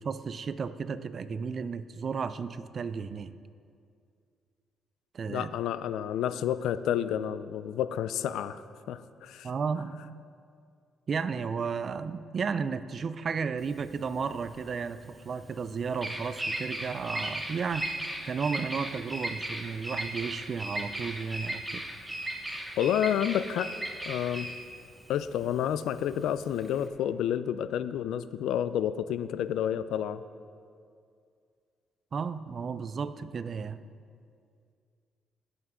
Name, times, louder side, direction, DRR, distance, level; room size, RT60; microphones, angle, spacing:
voice 1, 0.0-3.3 5.1-5.5 9.4-10.0 11.1-17.9 18.2-21.8 32.1-33.8, right 5 dB, 45° right, 14 dB, 0.4 m, -33 dB
voice 2, 5.3-8.6 8.9-9.5 22.8-23.7 24.1-24.5 25.1-30.2, left 10 dB, 85° left, 14 dB, 0.4 m, -30 dB
Bird vocalization bird call bird song, 13.6-26.9, right 1 dB, 10° right, 1.2 m, -37 dB
16.5 x 8.1 x 3.7 m, 2.3 s
cardioid pair, 90°, 0 cm